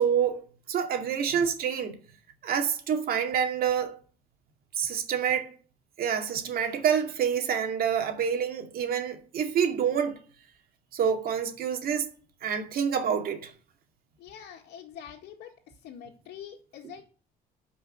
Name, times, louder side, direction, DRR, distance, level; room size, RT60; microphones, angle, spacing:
voice 1, 0.0-1.9 2.4-4.0 4.8-5.5 6.0-10.2 10.9-12.1 12.4-13.5, right 7 dB, 60° right, 2.3 m, -27 dB
voice 2, 14.2-15.5 15.8-17.0, left 9 dB, 75° left, 2.0 m, -45 dB
12.5 x 5.6 x 7.9 m
cardioid pair, 110°, 17 cm